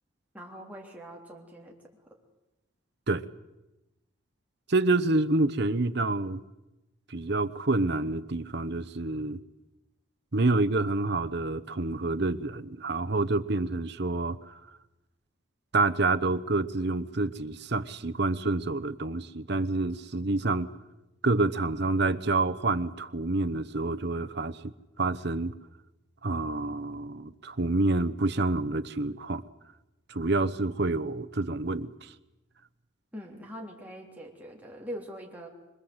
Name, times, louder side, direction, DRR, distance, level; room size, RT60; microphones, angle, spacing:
voice 1, 0.3-1.8 33.1-35.5, equal, 5° right, -1 dB, 3.4 m, -42 dB
voice 2, 4.7-6.4 7.1-9.4 10.3-14.5 15.7-20.7 21.2-24.6 25.0-25.5 26.2-29.4 30.1-32.1, right 2 dB, 50° right, 12 dB, 0.9 m, -28 dB
25.5 x 22.0 x 8.0 m, 0.99 s
head